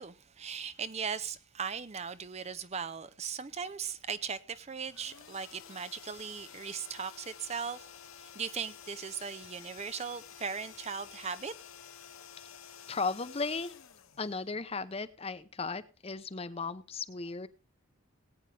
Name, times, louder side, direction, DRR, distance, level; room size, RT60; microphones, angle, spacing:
voice 1, 0.0-7.9 8.3-11.5, right 6 dB, 30° right, 0.5 m, -38 dB
sound 1, 4.9-14.8, left 8 dB, 75° left, 1.1 m, -51 dB
voice 2, 12.9-13.7 14.2-17.5, left 4 dB, 30° left, 0.7 m, -36 dB
19.0 x 9.0 x 3.4 m
head